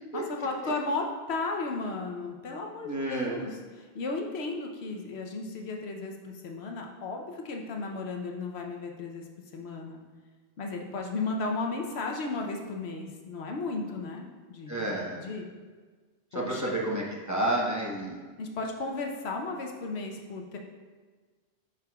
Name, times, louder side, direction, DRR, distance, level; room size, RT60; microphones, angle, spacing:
voice 1, 0.1-9.2 9.5-10.0 10.6-15.5 16.3-16.7 18.4-20.6, left 3 dB, 75° left, 2 dB, 1.0 m, -35 dB
voice 2, 2.8-3.4 14.7-15.2 16.3-18.2, right 1 dB, 15° right, -4 dB, 0.9 m, -30 dB
11.5 x 4.9 x 2.3 m, 1.4 s
omnidirectional pair, 1.1 m